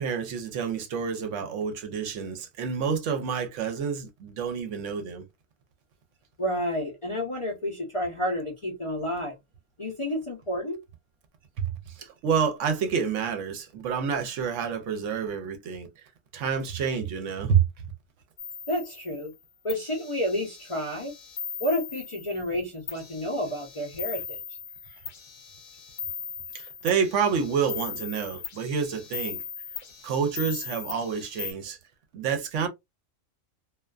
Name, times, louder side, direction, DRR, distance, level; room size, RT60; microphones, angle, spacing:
voice 1, 0.0-5.2 11.6-11.7 12.0-15.9 16.3-17.6 26.5-29.4 30.0-31.8 32.1-32.7, right 6 dB, 75° right, 0.9 m, -28 dB
voice 2, 6.4-9.4 9.8-10.8 18.7-19.3 19.6-21.1 21.6-24.2, equal, 40° left, 0.4 m, -30 dB
sound 1, 18.4-19.3 19.7-22.6 22.9-31.5, left 7 dB, 60° left, 0.9 m, -39 dB
2.4 x 2.2 x 2.3 m
omnidirectional pair, 1.3 m